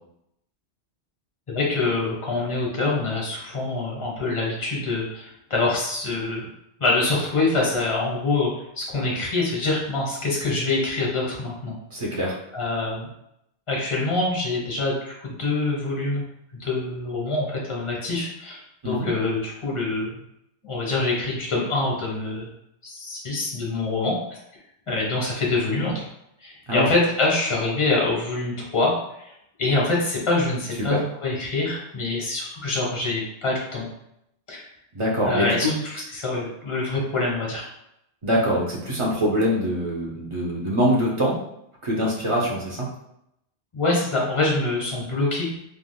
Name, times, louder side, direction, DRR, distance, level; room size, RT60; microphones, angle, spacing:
voice 1, 1.5-6.5 6.8-8.5 8.8-11.8 12.5-13.1 13.7-16.2 16.5-20.2 20.6-22.5 22.8-24.4 24.9-26.0 26.4-29.3 29.6-31.0 31.2-33.9 34.5-34.6 35.2-37.7 43.7-45.5, left 2 dB, 30° left, -3 dB, 0.8 m, -25 dB
voice 2, 11.9-12.3 18.8-19.1 26.7-26.9 30.9-31.0 34.9-35.7 38.2-41.3 41.8-42.9, equal, 30° right, -4 dB, 0.7 m, -23 dB
3.5 x 2.5 x 2.2 m, 0.79 s
omnidirectional pair, 1.1 m